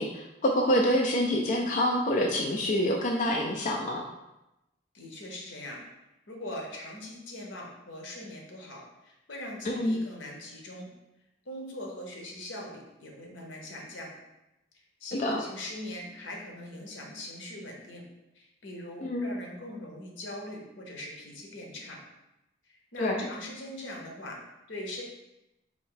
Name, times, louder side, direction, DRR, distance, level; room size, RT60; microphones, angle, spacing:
voice 1, 0.0-4.0 9.7-10.1 15.1-15.4 19.0-19.3 23.0-23.3, equal, 45° left, 1 dB, 0.4 m, -27 dB
voice 2, 4.9-5.8 6.3-10.9 11.5-14.1 15.0-18.1 18.3-22.0 22.7-24.4 24.7-25.0, left 1 dB, 85° left, 0 dB, 0.9 m, -41 dB
4.3 x 2.6 x 3.8 m, 0.93 s
head